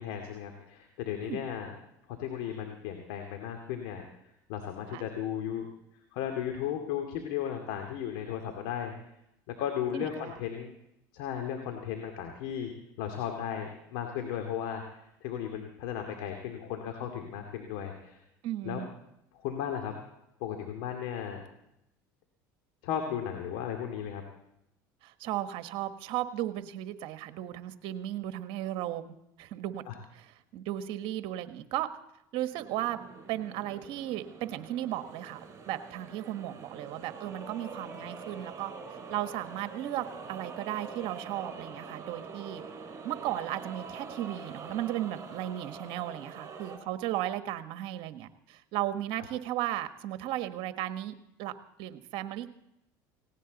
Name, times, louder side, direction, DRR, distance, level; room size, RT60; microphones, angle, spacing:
voice 1, 0.0-1.7 2.2-4.0 4.5-5.7 6.1-8.9 9.6-10.7 11.1-12.7 13.0-14.8 15.2-18.2 18.6-18.8 19.4-19.9 20.4-21.4 22.8-24.2 29.9-30.0, left 9 dB, 75° left, 4 dB, 2.3 m, -35 dB
voice 2, 9.9-10.4 18.4-18.9 25.0-29.9 30.1-31.9 32.3-33.0 33.3-35.4 35.7-38.7 39.1-42.6 43.0-52.5, right 13 dB, 65° right, 9 dB, 1.4 m, -35 dB
sound 1, 32.5-46.8, right 4 dB, 30° right, 4.6 m, -45 dB
18.5 x 17.5 x 4.1 m, 0.83 s
supercardioid pair, 90°, 10 cm